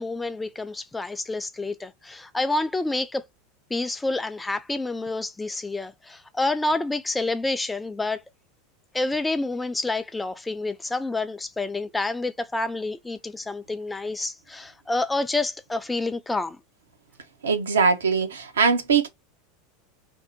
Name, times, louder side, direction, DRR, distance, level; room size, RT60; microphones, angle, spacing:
voice 1, 0.0-3.2 3.7-8.2 8.9-16.6, left 2 dB, 10° left, 0.4 m, -28 dB
voice 2, 17.4-19.1, right 5 dB, 80° right, 0.7 m, -21 dB
2.7 x 2.0 x 2.6 m
hypercardioid pair, 85°, 0 cm